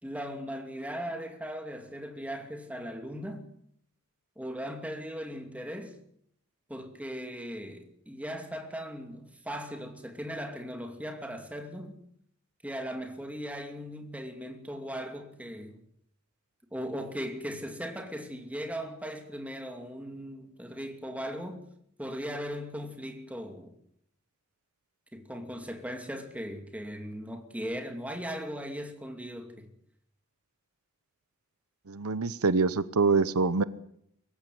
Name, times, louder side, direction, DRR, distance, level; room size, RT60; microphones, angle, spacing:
voice 1, 0.0-3.5 4.4-6.0 6.7-12.0 12.6-15.8 16.7-21.6 22.0-23.7 25.1-29.7, equal, 5° right, 2.5 m, -38 dB
voice 2, 31.9-33.6, right 4 dB, 90° right, 0.9 m, -25 dB
23.0 x 15.0 x 9.3 m
head